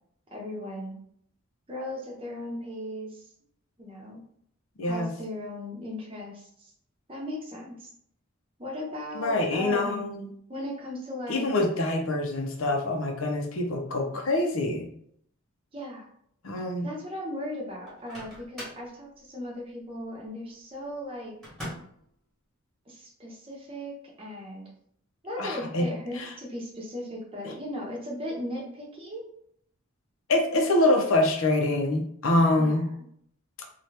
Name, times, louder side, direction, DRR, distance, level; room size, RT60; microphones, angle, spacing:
voice 1, 0.3-1.0 1.7-3.3 3.8-4.2 4.8-6.7 7.1-7.9 8.6-10.0 10.5-11.5 15.7-16.1 16.8-21.4 22.9-24.6 25.2-29.2 32.6-32.8, left 1 dB, 25° right, -3 dB, 0.8 m, -37 dB
voice 2, 4.8-5.1 9.1-10.3 11.3-14.9 16.4-16.9 25.4-25.9 26.2-26.3 30.3-32.9, left 2 dB, 75° left, 2 dB, 0.7 m, -25 dB
Microwave oven, 17.9-18.9 21.4-22.0, equal, ahead, 1.2 m, -41 dB
2.8 x 2.4 x 3.2 m, 0.67 s
head